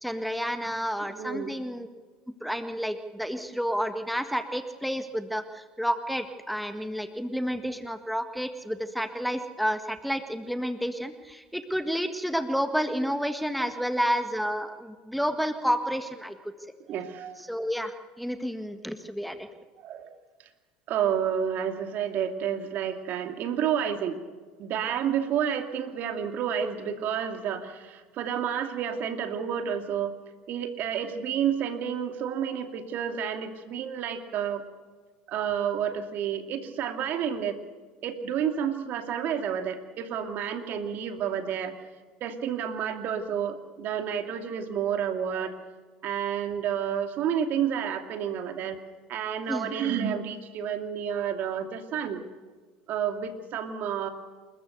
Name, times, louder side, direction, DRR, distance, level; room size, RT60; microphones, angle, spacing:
voice 1, 0.0-1.9 2.4-16.3 17.5-19.5 49.5-49.7, equal, ahead, 7 dB, 1.6 m, -30 dB
voice 2, 1.1-1.5 16.9-17.4 19.8-20.1 20.9-24.2 24.6-30.2 30.5-34.6 35.3-37.6 38.0-41.7 42.2-45.5 46.0-48.8 49.1-52.2 52.9-54.1, right 8 dB, 55° right, 6 dB, 2.5 m, -30 dB
28.0 x 14.0 x 6.7 m, 1.4 s
hypercardioid pair, 80°, 4 cm